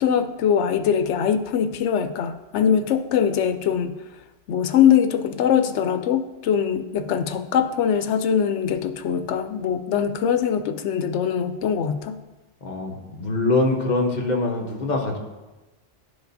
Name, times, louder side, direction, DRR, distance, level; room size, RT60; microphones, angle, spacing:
voice 1, 0.0-4.0 4.5-12.2, left 8 dB, 75° left, 9 dB, 0.9 m, -22 dB
voice 2, 12.6-15.2, left 2 dB, 40° left, 1 dB, 1.0 m, -23 dB
11.0 x 4.9 x 2.7 m, 1.1 s
omnidirectional pair, 1.2 m